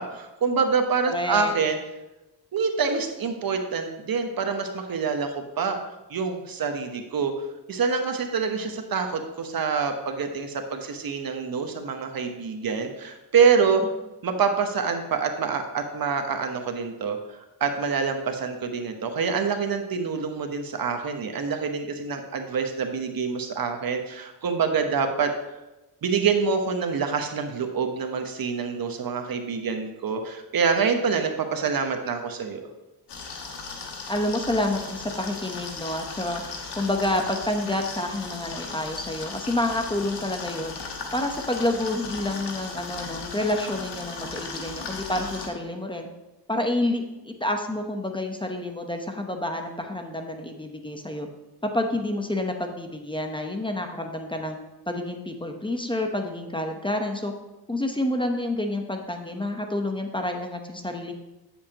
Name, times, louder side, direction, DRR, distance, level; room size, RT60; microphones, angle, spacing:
voice 1, 0.0-1.8 2.5-5.8 6.1-13.8 14.2-25.3 26.0-32.7, right 5 dB, 55° right, 5 dB, 1.0 m, -26 dB
voice 2, 1.1-1.5 34.1-36.4 36.8-40.7 41.1-46.1 46.5-51.3 51.6-54.6 54.9-57.3 57.7-61.1, left 1 dB, 10° left, 4 dB, 0.9 m, -28 dB
sound 1, 33.1-45.5, left 4 dB, 80° left, 1.4 m, -37 dB
8.5 x 7.2 x 2.9 m, 1.0 s
cardioid pair, 70°, 41 cm